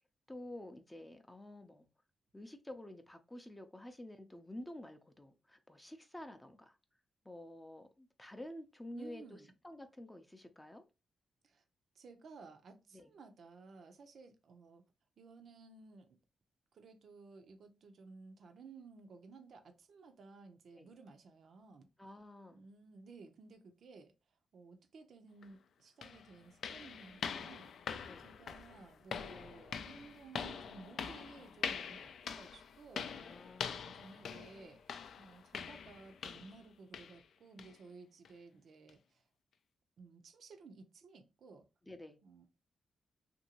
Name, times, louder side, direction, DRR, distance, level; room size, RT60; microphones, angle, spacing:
voice 1, 0.3-1.9 2.3-6.7 7.3-10.8 12.9-13.1 20.8-20.9 22.0-22.6 28.1-28.2 32.9-33.9 41.8-42.2, left 1 dB, 10° left, 0.5 m, -50 dB
voice 2, 8.9-9.5 11.4-11.6 12.0-14.8 15.2-16.1 16.7-21.9 22.5-24.1 24.5-27.7 28.2-33.1 33.6-34.8 35.2-39.2 40.0-41.7 42.2-42.4, right 4 dB, 70° right, 0.6 m, -56 dB
sound 1, 25.4-25.5 26.0-36.6 36.9-37.2 37.6-37.8 38.2-38.3 38.9-39.0, left 7 dB, 75° left, 0.3 m, -44 dB
2.8 x 2.6 x 2.8 m
cardioid pair, 75°, 0 cm